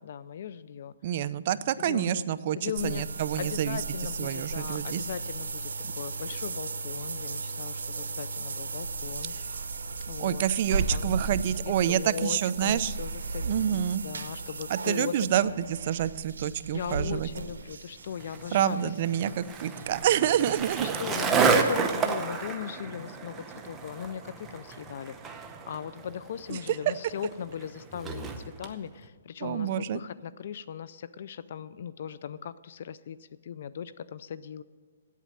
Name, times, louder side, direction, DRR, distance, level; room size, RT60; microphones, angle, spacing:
voice 1, 0.0-0.9 1.8-2.3 2.5-3.0 3.4-5.7 6.0-9.3 10.1-10.4 10.9-11.2 11.6-15.6 16.7-18.9 19.2-19.3 21.0-25.2 25.7-28.3 28.6-34.6, left 8 dB, 55° left, 17 dB, 0.3 m, -38 dB
voice 2, 1.0-3.8 4.2-5.0 10.2-12.9 13.4-14.0 14.7-17.3 18.5-21.0 26.5-26.6 29.4-30.0, right 10 dB, 40° right, 14 dB, 0.4 m, -28 dB
sound 1, 2.8-21.4 21.7-21.8 22.3-22.4, right 4 dB, 85° right, 0.8 m, -36 dB
Skateboard, 18.2-28.7, right 5 dB, 15° right, 0.7 m, -31 dB
8.5 x 8.2 x 8.9 m, 1.5 s
hypercardioid pair, 155°, 0 cm